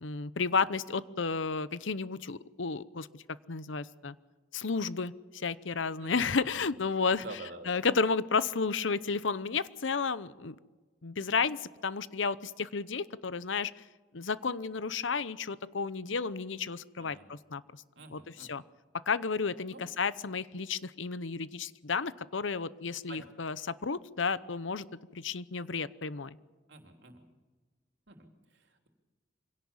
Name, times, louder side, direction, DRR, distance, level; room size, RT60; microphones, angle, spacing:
voice 1, 0.0-3.2 3.5-4.1 4.5-7.2 7.7-10.6 11.0-13.8 14.1-17.8 18.1-18.6 19.1-24.9 25.1-26.4, left 5 dB, 80° left, 16 dB, 0.8 m, -32 dB
voice 2, 6.0-6.8 7.2-7.8 17.0-17.3 17.9-18.5 19.7-19.9 23.1-23.3 26.7-27.2 28.1-28.9, right 2 dB, 70° right, 4 dB, 3.3 m, -48 dB
25.0 x 17.5 x 7.3 m, 1.3 s
head